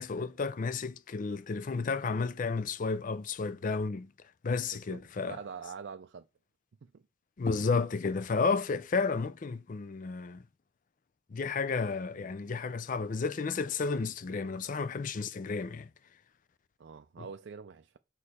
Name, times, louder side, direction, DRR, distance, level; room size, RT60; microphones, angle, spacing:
voice 1, 0.0-4.1 4.4-5.4 7.4-10.4 11.3-15.9 17.2-17.3, left 4 dB, 40° left, 0.4 m, -32 dB
voice 2, 5.3-6.3 6.8-7.0 12.1-12.3 16.8-18.0, right 6 dB, 55° right, 0.4 m, -45 dB
6.6 x 5.3 x 4.2 m
head